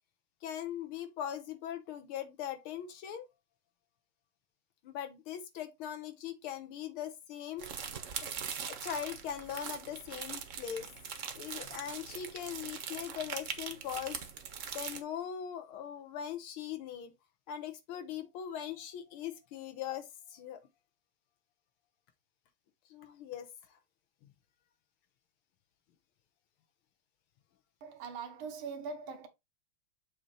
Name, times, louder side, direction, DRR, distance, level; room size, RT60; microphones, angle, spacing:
voice 1, 0.4-3.3 4.8-7.7 8.7-10.9 11.3-14.2 14.7-17.1 17.5-20.6 22.9-23.5 24.2-24.3, left 9 dB, 90° left, 1.8 m, -40 dB
sound 1, 7.6-15.0, right 7 dB, 55° right, 0.9 m, -42 dB
voice 2, 27.8-29.3, right 5 dB, 85° right, 1.9 m, -42 dB
7.0 x 2.9 x 4.9 m
omnidirectional pair, 2.2 m